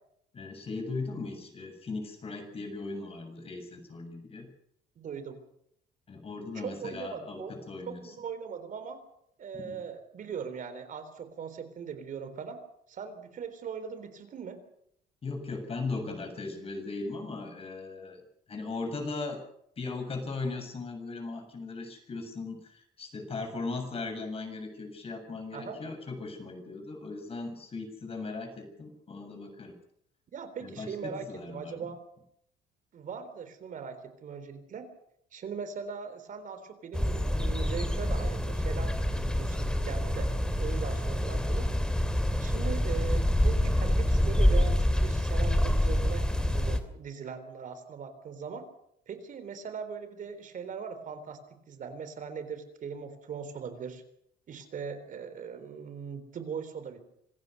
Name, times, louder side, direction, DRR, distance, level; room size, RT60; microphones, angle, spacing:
voice 1, 0.3-4.5 6.1-8.1 9.5-9.8 15.2-18.2 18.5-19.4 19.8-29.8 30.6-31.9, left 3 dB, 35° left, 5 dB, 7.5 m, -38 dB
voice 2, 5.0-5.4 6.5-7.5 7.9-9.0 9.4-12.6 12.9-14.6 25.5-25.8 30.3-32.0 32.9-34.9 35.3-40.3 40.6-41.7 42.4-48.6 49.1-51.4 51.7-54.0 54.5-57.0, right 6 dB, 50° right, 10 dB, 3.8 m, -40 dB
sound 1, 36.9-46.8, left 1 dB, 5° left, 2.7 m, -27 dB
26.0 x 15.5 x 6.9 m, 0.71 s
cardioid pair, 110°, 17 cm